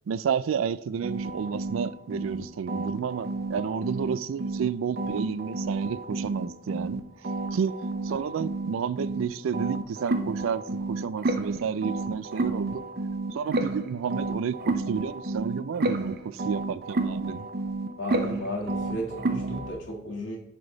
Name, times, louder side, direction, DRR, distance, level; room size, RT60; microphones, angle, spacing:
voice 1, 0.1-7.0 7.5-7.8 8.0-12.8 13.3-17.5, right 7 dB, 85° right, 17 dB, 0.3 m, -31 dB
sound 1, 1.0-4.7 5.0-9.2 9.5-19.7, right 2 dB, 50° right, 0.6 m, -31 dB
voice 2, 18.0-20.4, equal, 65° left, 0 dB, 1.9 m, -34 dB
9.7 x 3.4 x 3.9 m, 0.81 s
head